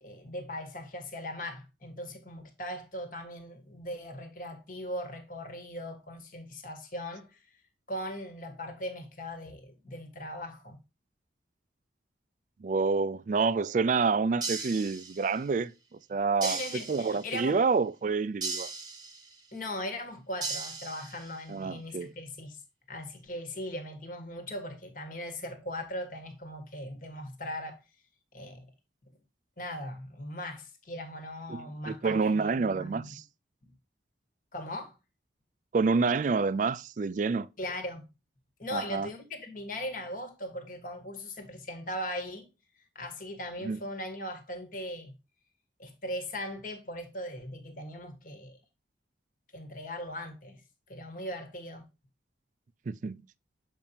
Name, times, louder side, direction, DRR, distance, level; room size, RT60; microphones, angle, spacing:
voice 1, 0.0-7.6 7.9-10.8 16.4-17.6 19.5-22.6 22.9-27.8 28.3-28.7 29.6-33.1 34.5-34.9 37.6-38.1 38.6-42.5 42.8-45.1 45.8-48.6 49.5-50.6 50.9-51.8, left 1 dB, 45° left, 1.4 m, -39 dB
voice 2, 12.6-15.7 16.1-16.6 16.9-18.7 21.5-22.1 31.5-33.2 35.7-37.5 38.7-39.1 43.6-43.8 52.9-53.2, right 4 dB, 40° right, 0.3 m, -28 dB
sound 1, 14.4-15.5 16.4-17.5 18.4-19.5 20.4-21.5, right 4 dB, 20° right, 1.0 m, -37 dB
7.2 x 5.2 x 2.7 m
head